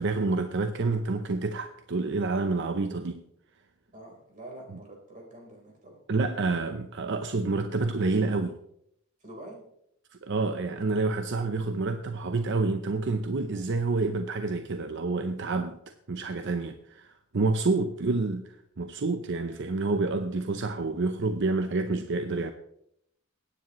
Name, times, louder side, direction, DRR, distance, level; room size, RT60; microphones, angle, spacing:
voice 1, 0.0-3.2 6.1-8.6 10.2-15.8 16.1-17.1 17.3-18.5 18.8-22.5, right 3 dB, 60° right, 0.7 m, -28 dB
voice 2, 3.9-6.0 9.2-9.6 17.7-17.8, right 1 dB, 40° right, 4.0 m, -46 dB
21.5 x 9.9 x 3.1 m
head